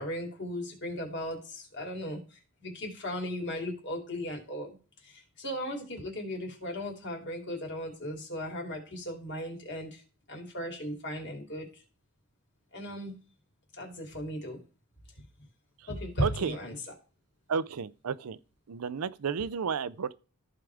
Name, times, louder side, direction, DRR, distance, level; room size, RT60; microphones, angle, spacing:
voice 1, 0.0-4.8 5.0-10.0 10.3-11.8 12.7-13.1 13.8-14.6 15.9-16.7, equal, 50° left, 2.9 m, -36 dB
voice 2, 16.2-16.6 17.5-18.4 18.7-20.1, right 6 dB, 85° right, 0.5 m, -32 dB
14.5 x 4.9 x 3.5 m
head